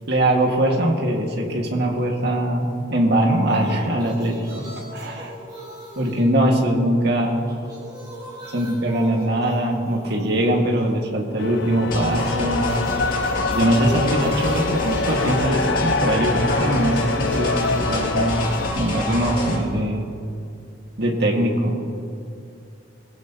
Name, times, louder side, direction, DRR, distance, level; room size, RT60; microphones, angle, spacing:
voice 1, 0.1-4.6 4.9-5.3 6.0-7.5 8.5-12.7 13.5-18.4 18.8-20.1 21.0-21.8, right 1 dB, 55° right, 1 dB, 2.0 m, -21 dB
sound 1, 3.0-7.0 7.3-11.1 12.1-20.1, right 1 dB, 20° right, 3.6 m, -41 dB
sound 2, 11.4-18.7, left 4 dB, 60° left, 0.5 m, -25 dB
sound 3, 11.9-19.6, left 1 dB, 45° left, 2.6 m, -28 dB
21.0 x 16.0 x 3.0 m, 2.5 s
head